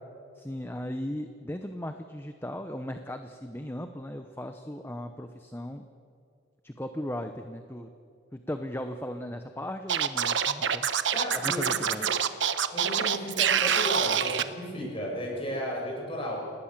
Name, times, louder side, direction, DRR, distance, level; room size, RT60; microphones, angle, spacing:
voice 1, 0.3-5.9 6.6-7.9 8.3-10.9 11.3-12.1, left 1 dB, 10° left, 7 dB, 0.8 m, -37 dB
Scratching (performance technique), 9.9-14.4, right 8 dB, 70° right, 1.0 m, -26 dB
voice 2, 11.1-12.1 12.7-16.4, equal, 25° left, -1 dB, 6.6 m, -34 dB
27.5 x 19.0 x 7.4 m, 2.4 s
head